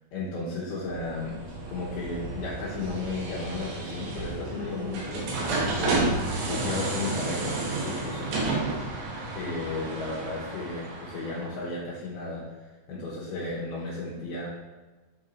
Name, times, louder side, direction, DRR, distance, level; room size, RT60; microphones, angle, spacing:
voice 1, 0.1-1.4 1.7-6.2 6.5-8.7 9.3-12.6 12.9-14.5, left 3 dB, 70° left, -9 dB, 2.6 m, -34 dB
sound 1, 0.9-11.6, right 2 dB, 70° right, 3.0 m, -31 dB
8.9 x 3.7 x 4.4 m, 1.3 s
omnidirectional pair, 5.8 m